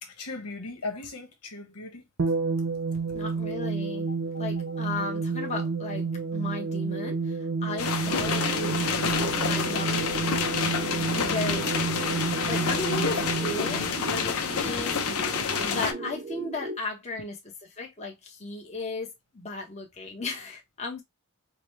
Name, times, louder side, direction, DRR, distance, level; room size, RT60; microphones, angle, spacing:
voice 1, 0.0-2.1, left 3 dB, 90° left, 1.2 m, -38 dB
sound 1, 2.2-15.0, right 4 dB, 70° right, 0.8 m, -30 dB
voice 2, 3.1-10.3 10.9-11.7 12.2-15.2 15.6-17.4 17.8-21.0, left 3 dB, 30° left, 0.9 m, -36 dB
sound 2, 7.8-15.9, left 6 dB, 75° left, 0.7 m, -28 dB
sound 3, 8.1-16.8, right 2 dB, 35° right, 0.6 m, -37 dB
5.0 x 2.1 x 3.1 m
head